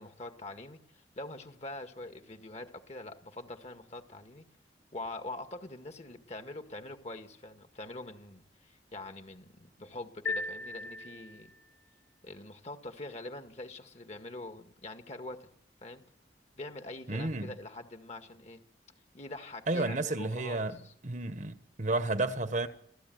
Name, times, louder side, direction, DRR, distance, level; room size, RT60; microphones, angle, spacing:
voice 1, 0.0-4.4 4.9-11.5 12.2-15.5 15.8-16.0 16.6-18.6 19.1-20.9 21.9-22.0, left 2 dB, 40° left, 1.9 m, -44 dB
sound 1, 10.3-11.7, left 2 dB, 80° left, 3.3 m, -37 dB
voice 2, 17.1-17.6 19.7-20.8 21.0-22.7, right 2 dB, 45° right, 1.2 m, -31 dB
27.0 x 15.5 x 9.4 m
head